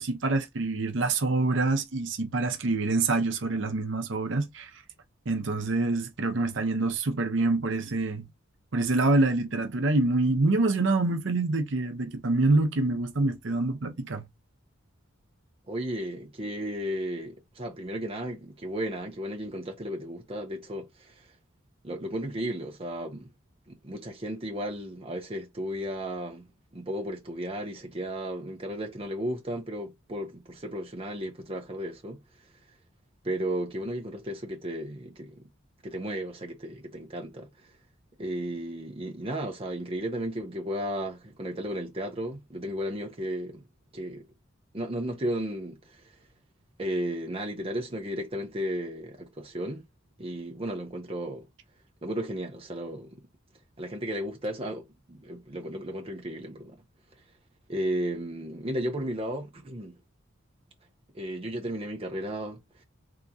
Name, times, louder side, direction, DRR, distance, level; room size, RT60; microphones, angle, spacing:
voice 1, 0.0-4.7 5.3-8.3 8.7-14.2, right 2 dB, 60° right, 0.7 m, -26 dB
voice 2, 15.7-21.3 21.8-23.3 23.7-26.4 26.7-32.2 33.2-35.4 35.8-37.5 38.2-43.6 43.9-44.2 44.7-46.0 46.8-49.9 50.2-51.5 52.0-53.1 53.8-56.7 57.7-60.0 61.1-62.6, right 1 dB, 25° right, 0.6 m, -34 dB
3.6 x 2.8 x 2.7 m
head